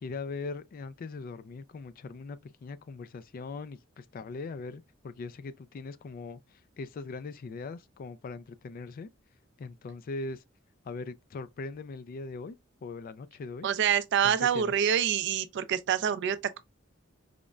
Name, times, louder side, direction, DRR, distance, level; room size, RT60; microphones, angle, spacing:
voice 1, 0.0-6.4 6.8-9.1 9.6-10.4 10.9-13.7 14.2-14.7, left 3 dB, 45° left, 0.3 m, -40 dB
voice 2, 13.6-16.6, right 8 dB, 60° right, 0.4 m, -26 dB
5.0 x 2.1 x 2.3 m
head